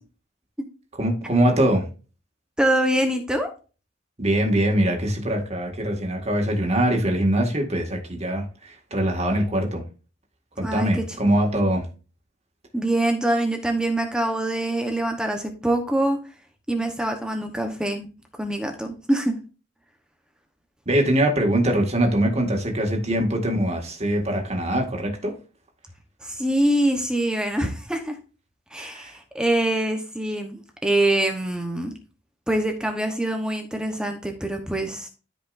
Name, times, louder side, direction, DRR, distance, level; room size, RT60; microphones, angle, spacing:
voice 1, 1.0-1.9 4.2-9.8 10.6-11.8 20.9-25.3 28.8-29.1, right 1 dB, 35° right, 2.0 m, -23 dB
voice 2, 2.6-3.5 10.6-10.9 11.5-11.6 12.7-16.2 16.7-18.1 18.4-19.4 26.2-28.2 28.7-31.9 32.5-35.1, right 1 dB, 5° right, 1.0 m, -24 dB
13.5 x 5.2 x 2.6 m
head